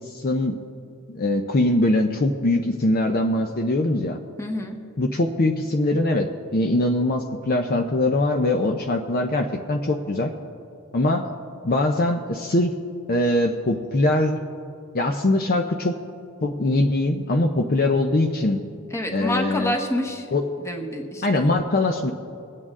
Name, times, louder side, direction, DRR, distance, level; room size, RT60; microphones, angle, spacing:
voice 1, 0.1-0.5 1.1-4.2 5.0-6.3 6.5-10.3 10.9-11.3 11.6-12.8 13.1-14.4 14.9-16.0 16.4-18.6 19.1-19.8 20.3-20.5 21.2-22.1, left 2 dB, 45° left, 4 dB, 0.6 m, -22 dB
voice 2, 4.4-4.8 18.9-20.3 20.6-21.5, left 1 dB, 15° left, 3 dB, 1.1 m, -28 dB
22.5 x 8.6 x 3.7 m, 2.5 s
head